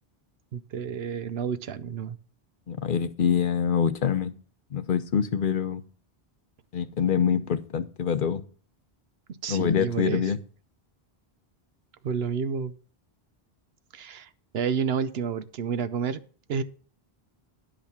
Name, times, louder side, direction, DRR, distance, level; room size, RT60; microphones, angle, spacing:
voice 1, 0.5-2.2 9.4-10.2 12.0-12.7 13.9-14.3 14.5-16.2 16.5-16.6, right 6 dB, 80° right, 13 dB, 0.9 m, -30 dB
voice 2, 2.7-4.3 4.7-5.8 6.7-8.4 9.5-10.4, left 7 dB, 60° left, 12 dB, 0.8 m, -25 dB
10.5 x 5.1 x 6.9 m, 0.42 s
omnidirectional pair, 1.0 m